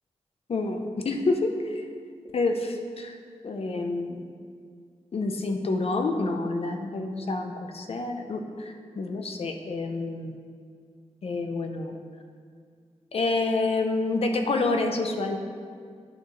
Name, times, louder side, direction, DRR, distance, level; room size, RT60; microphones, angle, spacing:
voice 1, 0.5-1.8 2.3-3.2 3.4-4.2 5.1-10.3 11.2-12.0 13.1-15.4, left 3 dB, 55° left, 5 dB, 0.8 m, -28 dB
11.0 x 6.6 x 3.2 m, 2.1 s
wide cardioid pair, 110°, 12 cm